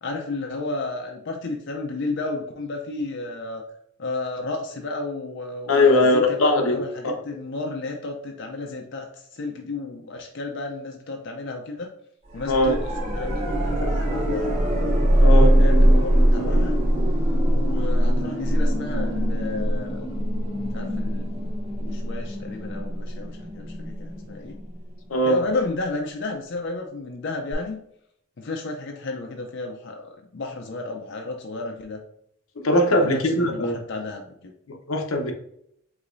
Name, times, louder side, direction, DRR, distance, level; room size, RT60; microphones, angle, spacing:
voice 1, 0.0-3.6 4.0-11.9 12.3-14.6 15.6-16.8 17.4-20.0 20.7-21.5 21.8-24.6 25.3-27.8 28.4-32.0 32.9-34.5, left 2 dB, 55° left, 2 dB, 0.5 m, -32 dB
voice 2, 5.7-7.2 12.5-12.8 15.2-15.5 25.1-25.4 32.6-33.8 34.7-35.3, left 1 dB, 85° left, 3 dB, 0.9 m, -20 dB
sound 1, 12.3-25.2 27.5-27.6, equal, 35° right, 1.1 m, -22 dB
4.9 x 3.4 x 2.6 m, 0.72 s
head